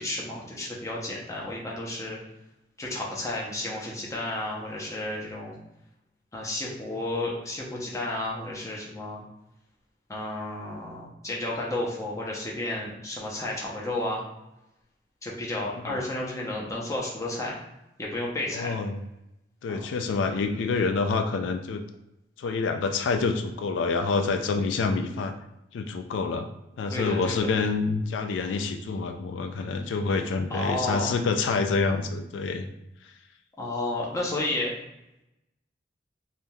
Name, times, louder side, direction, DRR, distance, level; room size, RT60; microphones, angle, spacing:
voice 1, 0.0-2.2 2.8-5.6 6.3-9.2 10.1-14.2 15.2-17.5 18.0-18.7 19.7-19.8 26.9-27.5 30.5-31.1 33.6-34.7, left 1 dB, 20° left, -3 dB, 0.6 m, -32 dB
voice 2, 18.5-19.0 19.6-21.8 22.4-25.4 25.7-26.5 26.8-32.7, left 4 dB, 90° left, 7 dB, 0.3 m, -27 dB
3.4 x 2.7 x 2.2 m, 0.90 s
head